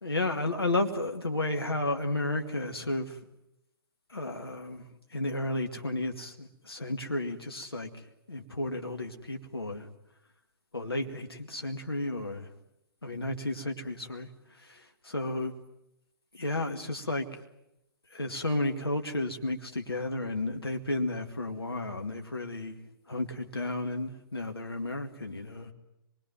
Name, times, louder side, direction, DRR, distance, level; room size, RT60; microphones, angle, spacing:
voice 1, 0.0-3.2 4.1-7.9 8.3-9.9 10.7-12.5 13.0-14.3 14.6-15.5 16.3-17.3 18.1-22.8 23.1-25.7, left 2 dB, 85° left, 4 dB, 2.1 m, -32 dB
25.5 x 21.5 x 9.4 m, 0.87 s
figure-of-eight pair, 125°, 12 cm